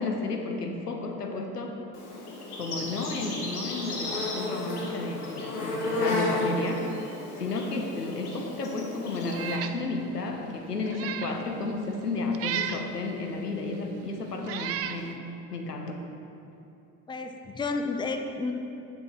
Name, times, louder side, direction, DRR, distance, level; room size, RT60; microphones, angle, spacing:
voice 1, 0.0-1.8 2.6-6.9 7.4-15.2 15.5-16.0, left 3 dB, 90° left, 3 dB, 0.9 m, -32 dB
Insect, 1.9-9.6, left 2 dB, 75° left, 1.6 m, -33 dB
Meow, 9.3-9.8 10.2-10.3 10.8-11.4 12.3-12.9 13.7-13.8 14.4-15.0, right 9 dB, 35° right, 0.5 m, -33 dB
voice 2, 17.1-18.5, left 3 dB, 10° left, 5 dB, 0.6 m, -31 dB
10.5 x 9.4 x 3.0 m, 2.8 s
figure-of-eight pair, 65°, 46 cm